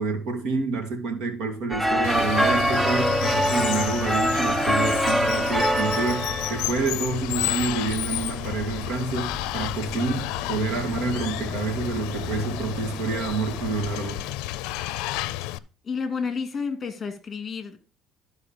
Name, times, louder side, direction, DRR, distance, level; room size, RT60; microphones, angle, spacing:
voice 1, 0.0-14.2, right 4 dB, 65° right, 2.3 m, -28 dB
sound 1, 1.7-14.3, right 1 dB, 5° right, 0.4 m, -27 dB
Water, 2.0-15.6, left 16 dB, 90° left, 0.5 m, -31 dB
voice 2, 15.8-17.8, left 5 dB, 25° left, 2.1 m, -30 dB
11.5 x 4.6 x 5.1 m
cardioid pair, 140°, 0 cm